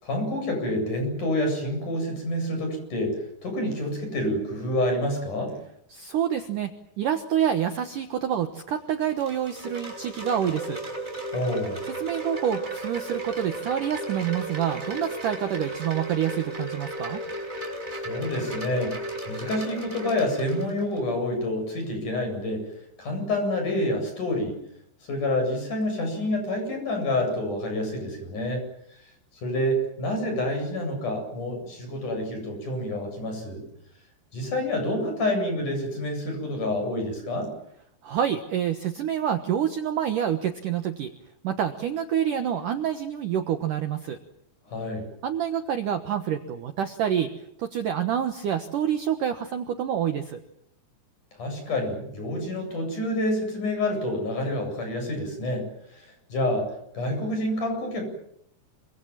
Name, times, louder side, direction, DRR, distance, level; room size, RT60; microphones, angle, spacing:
voice 1, 0.0-5.5 11.3-11.8 17.9-18.9 19.3-22.6 23.0-24.6 25.1-28.6 29.4-33.6 34.3-37.5 44.7-45.1 51.4-55.6 55.9-56.7 56.9-58.0, left 1 dB, 45° left, 4 dB, 9.5 m, -28 dB
voice 2, 5.9-10.8 11.9-17.2 38.0-41.1 41.4-44.2 45.2-47.3 47.6-50.4, right 9 dB, 65° right, 7 dB, 2.3 m, -27 dB
Wind chime, 8.8-21.0, right 1 dB, 15° right, 6.2 m, -35 dB
27.0 x 25.5 x 7.5 m, 0.75 s
omnidirectional pair, 5.2 m